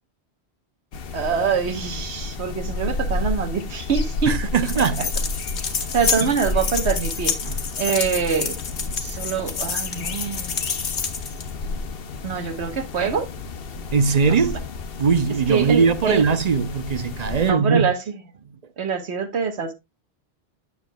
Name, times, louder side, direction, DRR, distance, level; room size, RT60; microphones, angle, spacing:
sound 1, 0.9-17.5, left 3 dB, 60° left, 1.0 m, -31 dB
voice 1, 1.1-4.4 5.0-5.1 5.9-7.3 7.8-8.6 9.0-10.6 12.2-13.3 14.3-14.4 15.5-16.2 17.4-18.0 18.8-19.7, right 6 dB, 90° right, 1.4 m, -24 dB
voice 2, 4.3-5.1 6.2-6.3 7.4-7.6 13.9-14.6 15.0-17.9, right 5 dB, 45° right, 0.7 m, -20 dB
sound 2, 4.6-11.5, left 6 dB, 90° left, 1.5 m, -28 dB
9.6 x 7.0 x 2.2 m
omnidirectional pair, 1.1 m